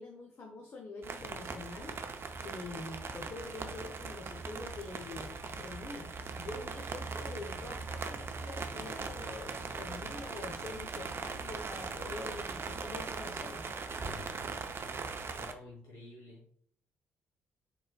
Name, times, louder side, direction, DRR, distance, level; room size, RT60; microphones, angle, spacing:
voice 1, 0.0-2.0 2.4-13.7, left 3 dB, 40° left, 1 dB, 0.8 m, -45 dB
sound 1, 1.0-15.5, right 4 dB, 40° right, 0.5 m, -40 dB
voice 2, 15.0-16.6, left 2 dB, 75° left, -4 dB, 1.2 m, -52 dB
4.0 x 4.0 x 2.2 m, 0.62 s
hypercardioid pair, 45°, 6 cm